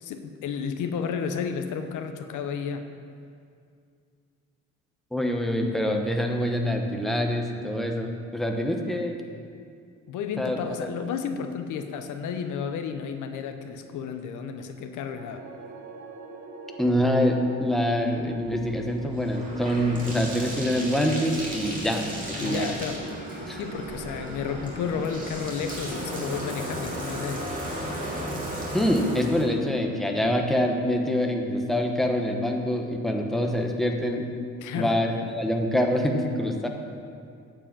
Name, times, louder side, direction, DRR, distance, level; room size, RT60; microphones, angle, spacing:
voice 1, 0.0-2.9 10.1-15.4 22.4-23.0 23.5-27.5 34.6-35.0, left 6 dB, 80° left, 7 dB, 0.7 m, -32 dB
voice 2, 5.1-9.2 10.4-10.6 16.8-22.8 23.5-23.6 28.7-34.3 34.7-36.7, equal, ahead, 2 dB, 0.9 m, -25 dB
sound 1, 14.9-31.2, right 3 dB, 75° right, 1.1 m, -46 dB
Bathtub (filling or washing), 18.1-29.4, right 1 dB, 25° right, 2.5 m, -35 dB
8.9 x 4.9 x 7.2 m, 2.3 s
cardioid pair, 90°, 30 cm